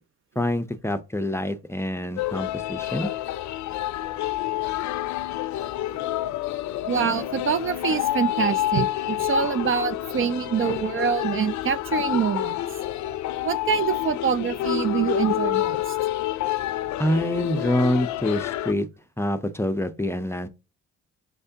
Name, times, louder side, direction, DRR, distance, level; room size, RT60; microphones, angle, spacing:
voice 1, 0.4-3.1 17.0-18.9 19.2-20.5, left 1 dB, 10° left, 0.5 m, -26 dB
sound 1, 2.2-18.7, left 13 dB, 70° left, 0.5 m, -28 dB
voice 2, 6.9-12.6 13.4-16.0, right 7 dB, 45° right, 0.4 m, -25 dB
5.8 x 3.3 x 2.8 m
cardioid pair, 90°, 30 cm